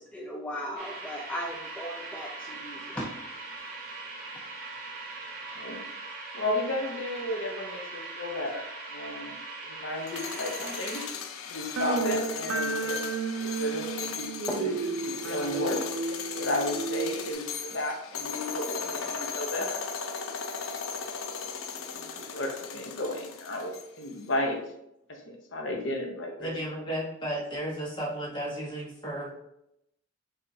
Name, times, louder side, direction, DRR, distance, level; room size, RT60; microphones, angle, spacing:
voice 1, 0.0-3.1 14.5-14.9 21.6-21.7, equal, 5° left, -2 dB, 0.4 m, -37 dB
sound 1, 0.8-11.1, right 3 dB, 45° right, 1.2 m, -41 dB
voice 2, 6.3-11.0 11.5-13.0 13.4-14.7 15.0-15.9 16.3-19.8 21.9-24.6 25.1-26.5, left 1 dB, 65° left, 2 dB, 0.8 m, -33 dB
sound 2, 10.0-24.1, left 6 dB, 90° left, 0.5 m, -37 dB
sound 3, 11.8-17.3, right 3 dB, 85° right, 0.4 m, -32 dB
voice 3, 26.4-29.3, right 1 dB, 25° left, -3 dB, 1.1 m, -34 dB
5.4 x 3.5 x 2.7 m, 0.80 s
head